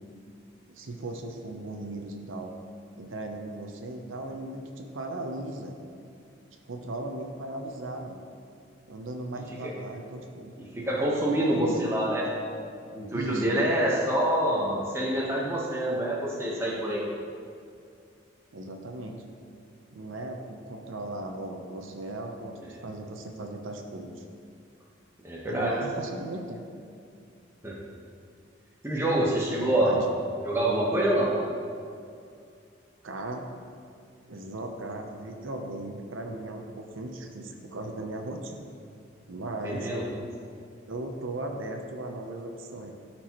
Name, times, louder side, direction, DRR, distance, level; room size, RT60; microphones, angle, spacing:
voice 1, 0.7-2.5 3.0-5.8 6.7-8.2 8.9-10.5 11.3-12.1 13.1-13.6 18.5-19.2 19.9-24.2 25.4-26.6 29.6-30.0 33.0-33.5 34.3-38.7 39.3-39.9 40.9-42.9, right 2 dB, 90° right, 3 dB, 0.7 m, -37 dB
voice 2, 10.6-12.3 12.9-17.0 25.2-25.7 27.6-27.8 28.8-30.1 30.4-31.3 39.6-40.0, right 1 dB, 15° right, -4 dB, 1.1 m, -26 dB
13.0 x 4.5 x 3.0 m, 2.4 s
head